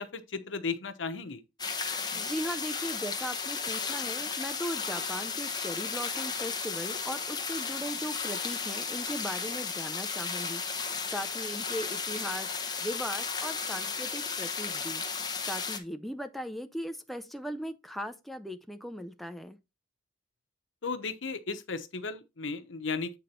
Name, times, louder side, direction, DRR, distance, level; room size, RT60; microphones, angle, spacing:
voice 1, 0.0-1.4 20.8-23.2, left 4 dB, 80° left, 0.9 m, -35 dB
sound 1, 1.6-15.8, left 5 dB, 20° left, 1.0 m, -34 dB
voice 2, 2.1-12.5 12.8-15.0 15.4-19.6, equal, ahead, 0.4 m, -38 dB
8.5 x 3.8 x 4.3 m
head